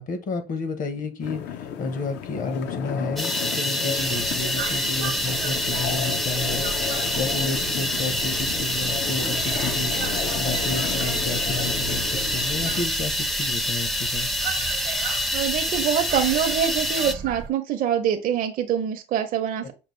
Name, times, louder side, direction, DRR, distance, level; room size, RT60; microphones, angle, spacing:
voice 1, 0.0-14.3, left 3 dB, 50° left, 0.9 m, -31 dB
sound 1, 1.2-12.8, left 9 dB, 80° left, 0.6 m, -33 dB
sound 2, 3.2-17.1, left 1 dB, ahead, 0.4 m, -26 dB
sound 3, 4.0-17.5, right 7 dB, 80° right, 0.8 m, -36 dB
voice 2, 15.3-19.7, right 9 dB, 55° right, 0.5 m, -25 dB
5.3 x 2.4 x 3.1 m
cardioid pair, 110°, 17 cm